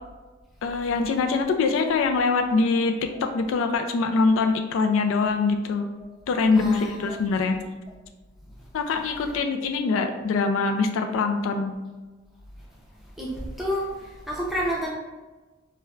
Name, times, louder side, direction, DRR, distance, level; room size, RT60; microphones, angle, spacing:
voice 1, 0.6-2.9 3.2-5.9 6.3-7.6 8.7-11.7, left 4 dB, 80° left, 5 dB, 0.3 m, -23 dB
voice 2, 6.6-7.2 13.2-14.9, equal, ahead, -4 dB, 0.5 m, -30 dB
4.3 x 2.1 x 2.3 m, 1.2 s
head